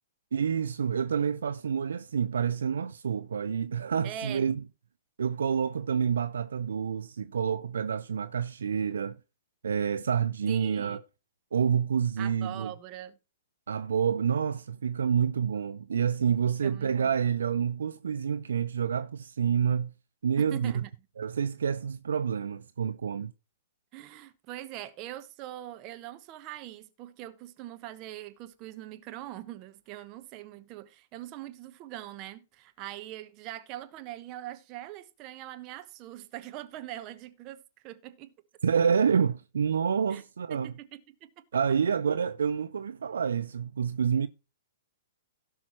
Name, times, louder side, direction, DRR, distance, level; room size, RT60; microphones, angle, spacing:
voice 1, 0.3-4.6 5.2-9.2 9.6-11.0 11.5-12.7 13.7-19.9 20.2-20.8 21.2-23.3 38.6-40.7 41.5-44.3, right 7 dB, 70° right, 0.5 m, -28 dB
voice 2, 4.0-4.4 10.5-11.0 12.2-13.2 16.6-17.1 20.4-20.9 23.9-38.3 40.1-40.2 40.5-41.4, right 13 dB, 35° right, 1.1 m, -42 dB
17.0 x 5.6 x 3.1 m
figure-of-eight pair, 110°, 0 cm